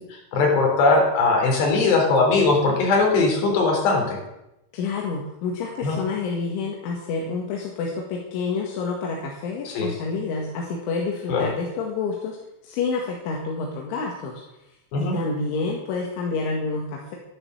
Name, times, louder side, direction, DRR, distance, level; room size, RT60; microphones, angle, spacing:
voice 1, 0.0-4.2 5.8-6.0 9.7-9.9 11.3-11.5 14.9-15.2, left 3 dB, 60° left, 0 dB, 5.9 m, -20 dB
voice 2, 4.7-12.4 12.6-14.4 15.0-17.2, left 4 dB, 80° left, -1 dB, 4.2 m, -28 dB
12.5 x 11.0 x 7.9 m, 0.90 s
omnidirectional pair, 5.5 m